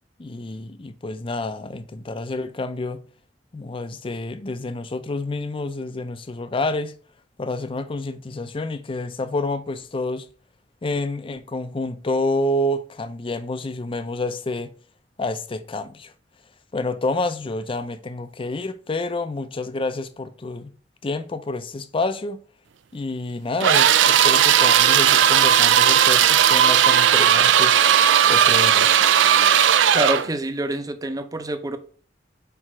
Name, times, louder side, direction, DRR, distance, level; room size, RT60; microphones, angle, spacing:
voice 1, 0.2-3.0 3.5-6.9 7.4-10.3 10.8-14.7 15.2-16.1 16.7-20.7 21.0-22.4 22.9-27.8 28.3-28.9, left 2 dB, 30° left, 0.5 m, -28 dB
sound 1, 23.6-30.3, right 9 dB, 85° right, 0.4 m, -16 dB
voice 2, 29.9-31.8, right 1 dB, 20° right, 0.6 m, -26 dB
4.6 x 4.2 x 4.8 m
head